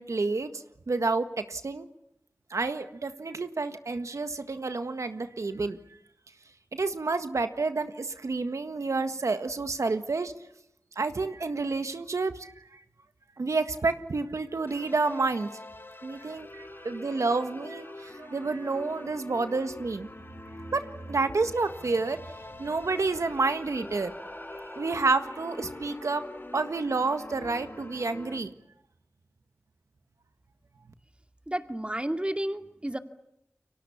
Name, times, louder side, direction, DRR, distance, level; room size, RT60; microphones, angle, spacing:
voice 1, 0.0-1.9 2.5-5.8 6.7-10.3 10.9-12.8 13.4-15.5 16.0-20.1 20.7-22.2 22.6-24.1 24.7-26.2 26.5-28.5, right 3 dB, 90° right, 9 dB, 1.6 m, -29 dB
sound 1, 14.7-28.4, left 2 dB, 45° left, 4.6 m, -45 dB
sound 2, 22.3-27.4, equal, 5° left, 3.6 m, -48 dB
voice 2, 31.5-33.0, right 1 dB, 20° right, 7 dB, 2.3 m, -31 dB
29.5 x 24.0 x 7.2 m, 0.80 s
wide cardioid pair, 45°, 5 cm